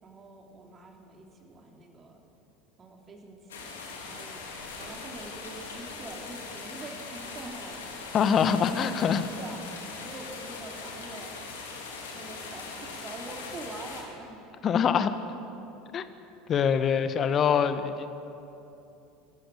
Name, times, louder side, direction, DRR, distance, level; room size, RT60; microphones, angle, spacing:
voice 1, 0.0-2.2 2.8-3.7 4.0-4.4 4.8-8.0 8.6-8.8 9.4-9.7 10.0-11.4 12.1-14.5 14.8-15.2, right 3 dB, 25° right, 1 dB, 3.4 m, -45 dB
sound 1, 3.5-14.0, left 4 dB, 70° left, 3.4 m, -40 dB
voice 2, 8.1-9.2 14.6-15.1 15.9-16.0 16.5-18.1, left 7 dB, 35° left, 11 dB, 1.3 m, -24 dB
26.0 x 14.5 x 8.4 m, 2.8 s
figure-of-eight pair, 70°, 0 cm